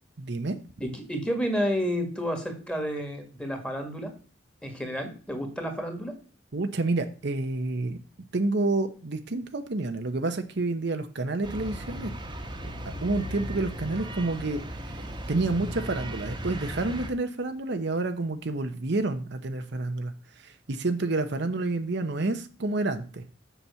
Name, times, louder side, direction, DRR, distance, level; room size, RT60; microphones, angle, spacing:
voice 1, 0.2-0.6 6.5-8.0 8.3-12.1 12.8-23.2, right 2 dB, 60° right, 8 dB, 0.8 m, -29 dB
voice 2, 0.8-4.1 4.6-6.1, equal, 5° left, 4 dB, 1.8 m, -30 dB
sound 1, 11.4-17.1, equal, 25° right, 1.3 m, -36 dB
7.1 x 6.1 x 6.8 m, 0.38 s
head